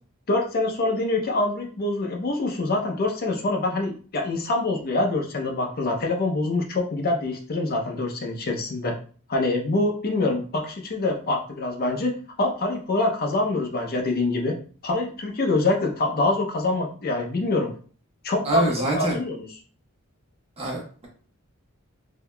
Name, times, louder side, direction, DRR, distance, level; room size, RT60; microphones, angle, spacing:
voice 1, 0.3-8.9 9.3-14.6 14.8-17.7 18.2-19.5, left 2 dB, 45° left, 2 dB, 0.6 m, -25 dB
voice 2, 18.4-19.2 20.6-21.1, right 1 dB, 30° right, -2 dB, 1.0 m, -25 dB
3.6 x 2.7 x 2.2 m, 0.42 s
head